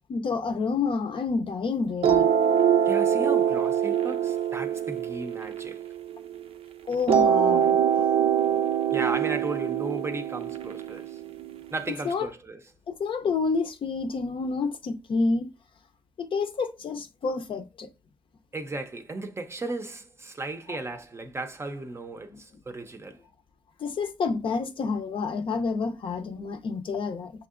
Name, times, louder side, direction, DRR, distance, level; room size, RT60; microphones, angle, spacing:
voice 1, 0.1-2.3 6.9-8.0 12.0-12.3 12.9-15.5 16.2-17.9 22.3-22.4 23.8-27.3, left 4 dB, 60° left, 0.6 m, -29 dB
sound 1, 2.0-6.4 7.1-12.0, right 8 dB, 75° right, 0.5 m, -24 dB
voice 2, 2.9-5.8 8.9-11.2 11.7-12.6 18.5-23.2, right 2 dB, 25° right, 0.5 m, -35 dB
5.9 x 2.7 x 2.4 m
cardioid pair, 100°, 10 cm